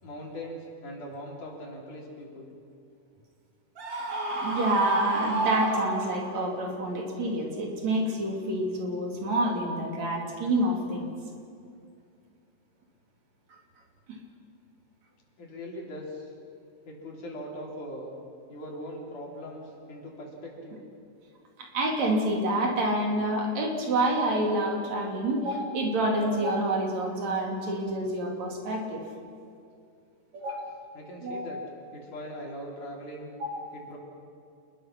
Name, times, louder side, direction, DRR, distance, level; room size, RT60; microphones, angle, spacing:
voice 1, 0.0-2.5 15.4-16.3 16.9-18.2 18.5-19.6 19.9-20.8 30.9-31.6 31.9-33.3 33.7-34.0, equal, 85° left, -2 dB, 5.3 m, -40 dB
Screaming, 3.8-6.5, right 2 dB, 40° right, 3.1 m, -30 dB
voice 2, 4.4-11.1 14.1-14.2 21.6-29.0 30.3-30.7 31.2-31.6 33.4-33.7, right 1 dB, 65° right, 1 dB, 4.0 m, -28 dB
28.5 x 21.0 x 6.0 m, 2.4 s
omnidirectional pair, 3.5 m